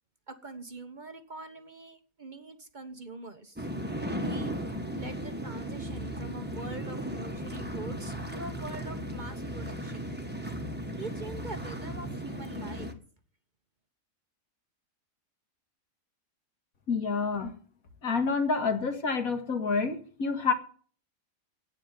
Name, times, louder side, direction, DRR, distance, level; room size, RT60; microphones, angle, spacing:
voice 1, 0.3-3.7 4.2-4.5 4.9-10.1 11.0-12.9, right 2 dB, 35° right, 8 dB, 1.2 m, -44 dB
sound 1, 3.6-12.9, equal, 5° right, 1.4 m, -36 dB
voice 2, 16.9-17.5 18.0-20.5, left 4 dB, 80° left, 6 dB, 2.3 m, -28 dB
9.9 x 9.2 x 9.0 m, 0.44 s
omnidirectional pair, 1.5 m